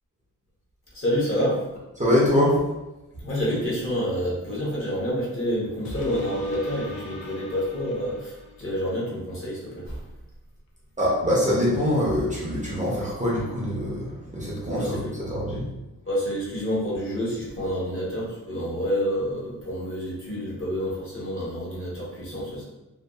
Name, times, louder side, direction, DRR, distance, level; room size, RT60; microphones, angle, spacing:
voice 1, 0.9-1.6 3.2-10.0 14.7-15.0 16.0-22.6, equal, 35° left, -7 dB, 0.9 m, -28 dB
voice 2, 2.0-2.6 11.0-15.7, left 1 dB, 20° right, -6 dB, 0.6 m, -24 dB
sound 1, 5.8-8.8 9.3-9.4, left 3 dB, 80° left, 0.5 m, -39 dB
2.6 x 2.3 x 2.3 m, 0.99 s
wide cardioid pair, 115°, 35 cm